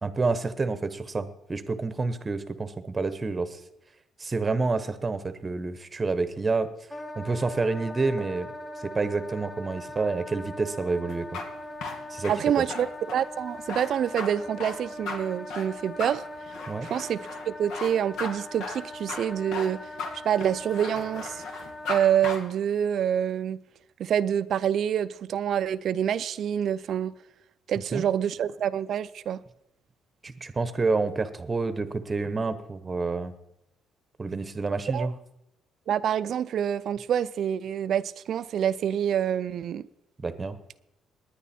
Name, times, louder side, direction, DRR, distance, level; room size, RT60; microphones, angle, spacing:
voice 1, 0.0-3.6 4.2-6.7 7.2-8.5 8.8-11.4 12.1-12.6 16.7-16.9 27.9-28.0 30.2-33.3 34.2-35.1 40.2-40.6, right 3 dB, 20° right, 0.9 m, -28 dB
Wind instrument woodwind instrument, 6.9-22.2, left 1 dB, 10° left, 0.7 m, -41 dB
sound 1, 11.1-22.0 22.2-22.4, left 4 dB, 80° left, 2.3 m, -36 dB
voice 2, 12.3-16.2 16.8-17.2 17.5-19.8 20.2-21.4 21.9-23.6 24.0-27.1 27.7-29.4 34.9-35.1 35.9-39.8, right 9 dB, 55° right, 0.5 m, -27 dB
19.5 x 10.0 x 4.3 m
cardioid pair, 150°, 0 cm